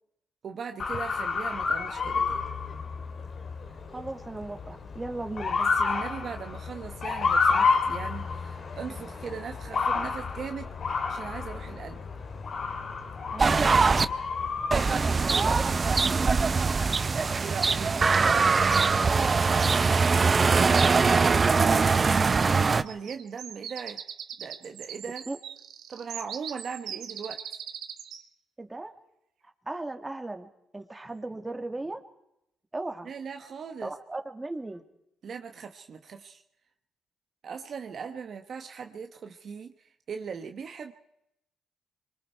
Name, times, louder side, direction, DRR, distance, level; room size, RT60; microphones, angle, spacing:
voice 1, 0.4-2.4 5.6-12.0 17.4-18.2 19.3-21.0 21.6-22.2 22.4-24.0 24.4-25.2 25.9-27.4 33.0-33.9 35.2-36.4 37.4-40.9, right 6 dB, 55° right, 5 dB, 1.3 m, -39 dB
Motor vehicle (road) / Siren, 0.8-16.4, left 5 dB, 50° left, 2.5 m, -30 dB
voice 2, 3.9-5.6 13.3-14.1 15.2-15.7 17.2-17.5 25.3-25.4 28.6-28.9 29.6-32.0 32.7-33.1 33.8-34.8, right 2 dB, 15° right, 6 dB, 2.2 m, -37 dB
sound 1, 13.4-14.1 14.7-22.8, right 4 dB, 35° right, 0.7 m, -22 dB
sound 2, 22.9-28.2, right 9 dB, 75° right, 1.5 m, -40 dB
24.5 x 24.0 x 4.7 m, 0.81 s
cardioid pair, 90°, 0 cm